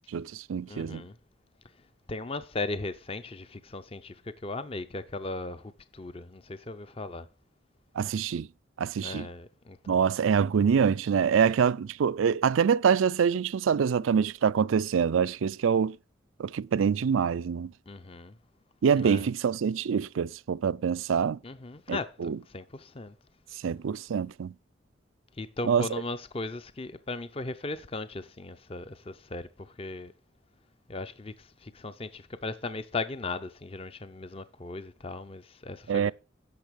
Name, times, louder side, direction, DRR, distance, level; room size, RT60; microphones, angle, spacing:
voice 1, 0.1-1.0 8.0-8.5 8.8-9.3 9.9-16.0 16.4-17.7 18.8-21.4 21.9-22.4 23.6-24.5 25.6-25.9 35.9-36.1, right 7 dB, 85° right, 0.4 m, -25 dB
voice 2, 0.7-1.1 2.1-7.3 9.0-10.1 17.9-18.3 19.0-19.3 21.4-23.1 25.4-30.1 30.9-36.1, left 3 dB, 30° left, 0.5 m, -37 dB
10.5 x 6.5 x 5.1 m
head